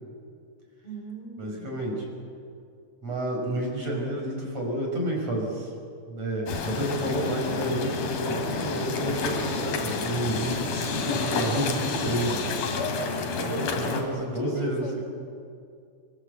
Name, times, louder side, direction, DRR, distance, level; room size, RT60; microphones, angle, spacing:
voice 1, 0.8-1.7 13.5-15.0, left 1 dB, 35° left, 1 dB, 4.3 m, -39 dB
voice 2, 1.4-2.1 3.0-5.7 6.1-12.5 13.4-14.9, right 1 dB, 35° right, 0 dB, 5.8 m, -30 dB
sound 1, 6.5-14.0, left 4 dB, 60° left, 3.8 m, -29 dB
25.0 x 23.5 x 7.9 m, 2.4 s
omnidirectional pair, 5.2 m